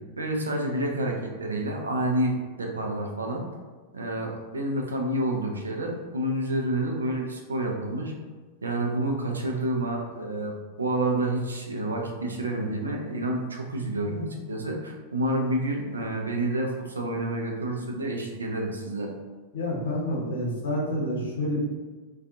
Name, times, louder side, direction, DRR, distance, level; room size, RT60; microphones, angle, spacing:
voice 1, 0.2-3.5 3.9-8.1 8.6-19.1, right 1 dB, 75° right, 1 dB, 0.4 m, -29 dB
voice 2, 19.5-21.6, left 1 dB, 65° left, -3 dB, 0.7 m, -28 dB
2.4 x 2.3 x 2.5 m, 1.4 s
figure-of-eight pair, 90°, 0 cm